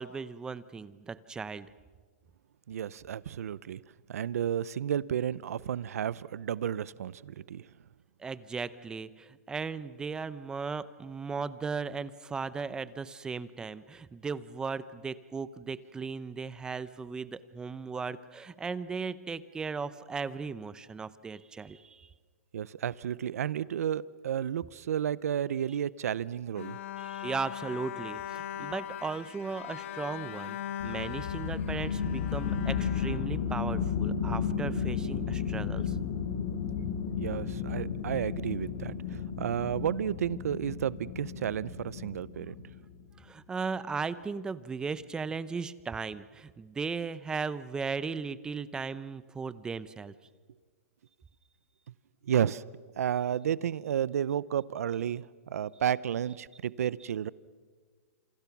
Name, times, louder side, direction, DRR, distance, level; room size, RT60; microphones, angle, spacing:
voice 1, 0.0-1.7 8.2-22.1 27.0-30.6 30.8-36.0 43.2-50.1, right 5 dB, 10° right, 16 dB, 0.7 m, -37 dB
voice 2, 2.7-3.8 4.1-7.6 22.5-26.8 37.2-42.5 52.2-52.6 53.0-57.3, right 9 dB, 75° right, 20 dB, 0.7 m, -32 dB
Bowed string instrument, 26.6-33.9, left 10 dB, 55° left, 1.2 m, -40 dB
sound 1, 30.8-42.9, left 7 dB, 75° left, 3.6 m, -33 dB
28.5 x 27.5 x 6.1 m, 1.5 s
hypercardioid pair, 155°, 8 cm